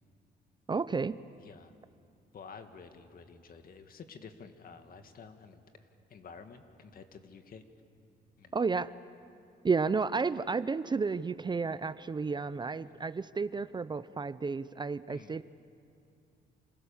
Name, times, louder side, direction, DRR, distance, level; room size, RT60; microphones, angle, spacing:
voice 1, 0.7-1.2 8.5-8.9 9.6-15.4, right 4 dB, 25° right, 16 dB, 0.6 m, -32 dB
voice 2, 1.4-1.7 2.3-5.6 6.1-7.6 8.4-8.5 12.8-13.1 15.1-15.4, left 5 dB, 55° left, 7 dB, 2.1 m, -50 dB
28.0 x 26.5 x 7.3 m, 2.4 s
cardioid pair, 95°, 18 cm